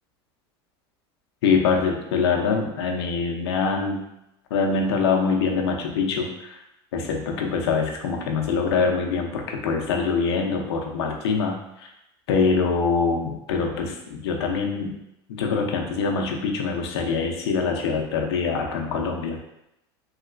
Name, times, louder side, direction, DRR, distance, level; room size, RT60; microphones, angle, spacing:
voice 1, 1.4-4.1 4.5-6.6 6.9-11.9 12.3-15.0 15.3-19.4, left 5 dB, 85° left, 2 dB, 0.6 m, -24 dB
3.2 x 2.8 x 2.5 m, 0.85 s
supercardioid pair, 110°, 13 cm